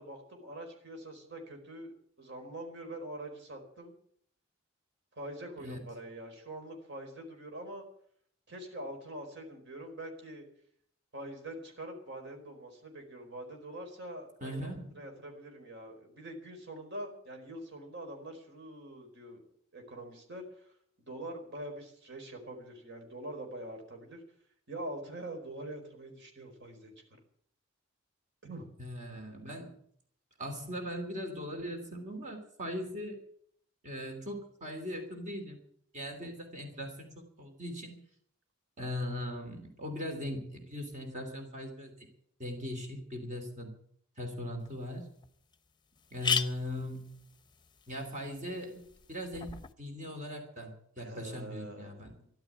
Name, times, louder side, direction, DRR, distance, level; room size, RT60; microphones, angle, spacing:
voice 1, 0.0-4.0 5.2-7.8 8.5-10.4 11.1-19.4 19.7-20.7 21.0-24.2 24.7-26.9 28.4-28.7 36.2-36.3 51.0-52.3, right 1 dB, 60° right, 3 dB, 4.6 m, -44 dB
voice 2, 14.4-15.0 28.8-29.8 30.4-33.2 33.8-35.6 35.9-38.0 38.8-42.1 42.4-43.7 44.2-45.1 46.1-47.2 47.9-52.1, left 1 dB, 35° right, 4 dB, 2.9 m, -39 dB
sound 1, 44.7-44.8 45.2-45.3 45.5-45.6 46.0-49.7, left 6 dB, 20° left, 0.9 m, -37 dB
14.0 x 12.0 x 8.7 m, 0.65 s
head